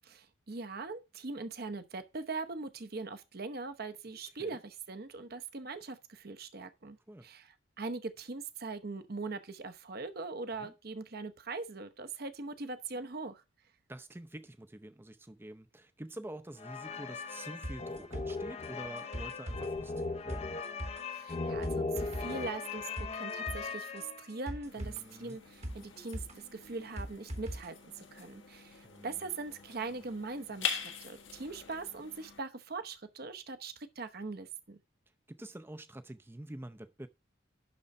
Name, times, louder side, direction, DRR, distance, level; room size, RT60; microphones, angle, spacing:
voice 1, 0.0-7.0 7.2-13.4 21.1-34.8, right 3 dB, 50° right, 0.9 m, -41 dB
voice 2, 13.9-20.5 24.7-25.4 28.8-29.2 35.3-37.1, right 1 dB, 10° right, 0.6 m, -47 dB
sound 1, 16.6-24.5, left 4 dB, 30° left, 0.6 m, -38 dB
sound 2, 17.6-27.7 28.0-28.1, equal, 35° right, 1.1 m, -43 dB
sound 3, 24.6-32.4, left 7 dB, 70° left, 1.6 m, -44 dB
11.0 x 3.9 x 5.3 m
head